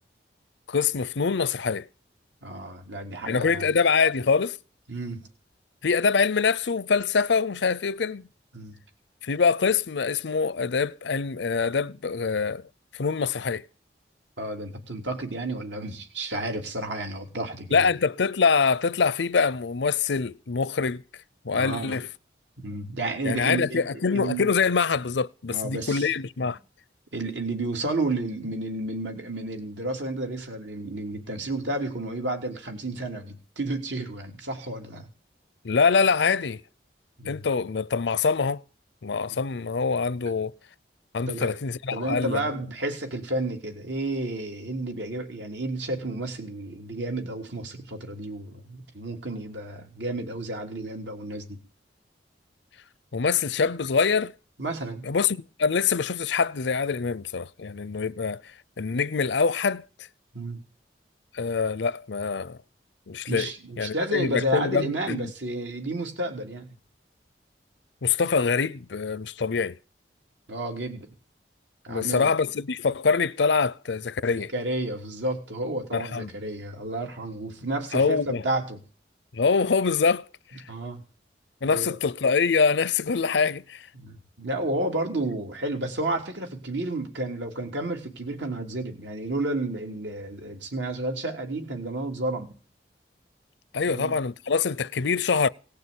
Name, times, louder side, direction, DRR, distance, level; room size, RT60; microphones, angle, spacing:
voice 1, 0.7-1.9 3.3-4.6 5.8-8.2 9.2-12.6 12.9-13.6 17.7-21.0 21.4-22.1 23.2-26.6 35.6-36.6 37.3-38.6 39.0-40.5 41.1-42.4 53.1-54.3 55.0-58.4 58.8-59.8 61.3-62.6 63.1-63.5 63.8-65.3 68.0-69.8 71.9-74.5 75.9-76.3 77.9-78.4 79.3-80.2 81.6-83.9 93.7-95.5, left 5 dB, 80° left, 0.6 m, -24 dB
voice 2, 2.4-3.7 4.9-5.3 8.5-8.7 14.4-17.8 21.5-22.0 22.6-24.4 25.5-26.1 27.1-35.1 37.2-37.4 39.3-39.4 41.3-41.5 41.9-51.6 54.6-55.1 60.3-60.6 63.3-66.7 70.5-71.1 71.8-72.3 74.3-78.8 80.7-81.0 81.6-82.0 83.9-92.5 93.8-94.2, right 2 dB, 85° right, 3.3 m, -31 dB
18.0 x 6.7 x 8.6 m
head